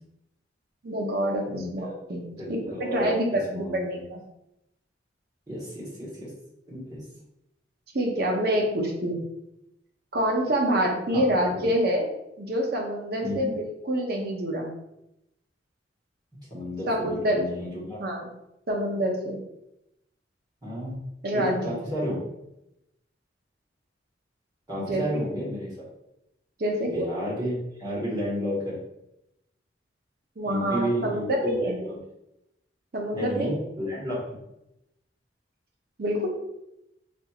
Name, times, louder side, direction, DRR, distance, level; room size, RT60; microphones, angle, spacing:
voice 1, 0.8-4.2 7.9-9.2 10.1-12.1 12.4-14.7 16.9-17.7 18.0-18.3 18.7-19.4 21.2-21.8 24.8-25.2 26.6-27.1 30.4-31.8 32.9-33.5 36.0-36.3, equal, 55° right, 0 dB, 0.7 m, -27 dB
voice 2, 1.5-1.9 2.3-3.1 3.5-3.8 5.5-6.3 6.7-7.0 11.1-11.7 13.2-13.5 16.5-18.0 20.6-21.0 21.3-22.2 24.7-25.9 26.8-28.8 30.4-32.0 33.1-34.2, equal, 20° right, -7 dB, 1.3 m, -32 dB
4.3 x 2.6 x 2.4 m, 0.85 s
head